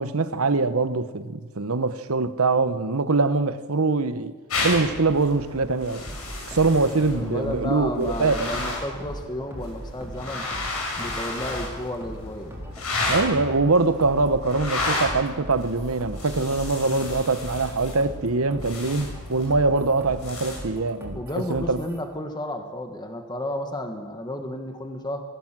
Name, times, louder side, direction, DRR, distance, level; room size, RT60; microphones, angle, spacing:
voice 1, 0.0-4.3 4.6-6.0 6.5-8.5 13.1-21.2 21.5-21.8, right 3 dB, 70° right, 1.0 m, -23 dB
sound 1, 4.5-20.6, left 2 dB, 75° left, 7.5 m, -33 dB
sound 2, 6.0-22.0, equal, 10° right, 4.1 m, -39 dB
voice 2, 7.1-10.5 11.0-12.5 21.1-25.2, left 1 dB, 20° left, 1.6 m, -32 dB
23.0 x 15.5 x 7.5 m
head